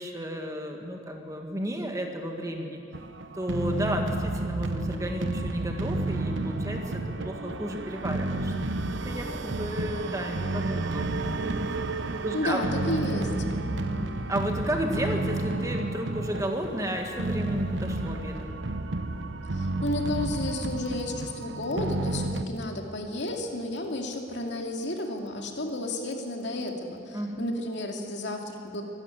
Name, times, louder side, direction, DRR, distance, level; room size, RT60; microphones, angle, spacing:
voice 1, 0.0-2.8 3.3-8.5 9.0-11.1 12.2-12.7 13.0-18.5 27.1-27.5, equal, 15° right, 3 dB, 1.7 m, -33 dB
sound 1, 2.9-22.5, right 2 dB, 85° right, 0.9 m, -31 dB
voice 2, 12.3-13.3 19.5-28.8, left 1 dB, 70° left, 2 dB, 2.4 m, -32 dB
24.0 x 12.5 x 9.2 m, 2.8 s
head